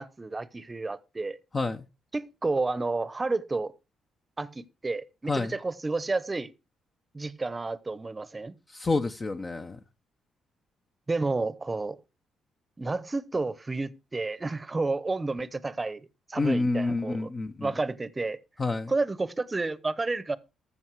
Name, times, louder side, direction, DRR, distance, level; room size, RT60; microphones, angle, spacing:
voice 1, 0.0-1.4 2.1-3.7 4.4-6.5 7.1-8.5 11.1-12.0 12.8-17.3 17.6-18.4 18.9-20.4, right 3 dB, 20° right, 0.9 m, -31 dB
voice 2, 1.5-1.8 5.3-5.5 8.7-9.8 16.4-17.7 18.6-18.9, left 3 dB, 30° left, 0.9 m, -28 dB
14.0 x 7.2 x 4.7 m
cardioid pair, 90°, 0 cm